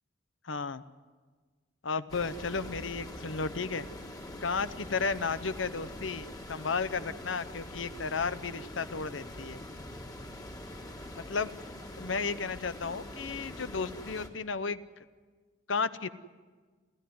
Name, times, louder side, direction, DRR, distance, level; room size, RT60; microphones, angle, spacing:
voice 1, 0.4-0.8 1.8-3.9 4.4-9.6 11.1-11.5 12.0-14.8 15.7-16.1, left 4 dB, 75° left, 13 dB, 0.9 m, -33 dB
sound 1, 2.1-14.3, left 1 dB, 20° left, 2.1 m, -44 dB
28.5 x 14.5 x 9.5 m, 1.4 s
head